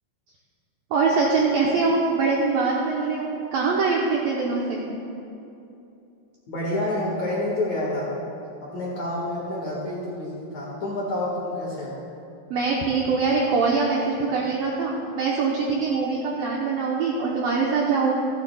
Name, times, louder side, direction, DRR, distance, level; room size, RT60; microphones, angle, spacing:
voice 1, 0.9-4.8 12.5-18.1, right 4 dB, 80° right, -3 dB, 2.0 m, -23 dB
voice 2, 6.5-8.1 8.6-12.0, left 1 dB, 50° left, -5 dB, 2.3 m, -28 dB
28.0 x 9.4 x 2.3 m, 2.7 s
omnidirectional pair, 5.3 m